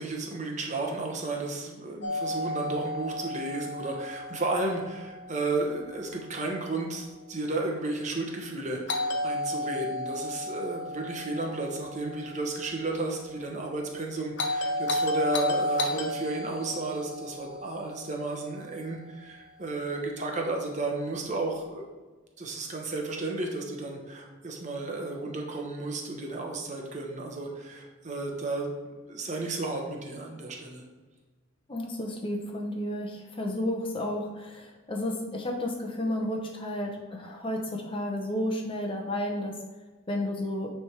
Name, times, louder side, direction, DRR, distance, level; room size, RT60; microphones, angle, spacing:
voice 1, 0.0-21.9 22.4-28.7 29.1-30.8, right 2 dB, 35° right, 1 dB, 1.1 m, -33 dB
Doorbell, 2.0-6.0 8.9-13.1 14.4-18.8, left 1 dB, 55° left, 0.7 m, -33 dB
voice 2, 31.7-39.6 40.1-40.7, left 1 dB, 25° left, 2 dB, 0.9 m, -32 dB
9.4 x 3.5 x 4.7 m, 1.3 s
head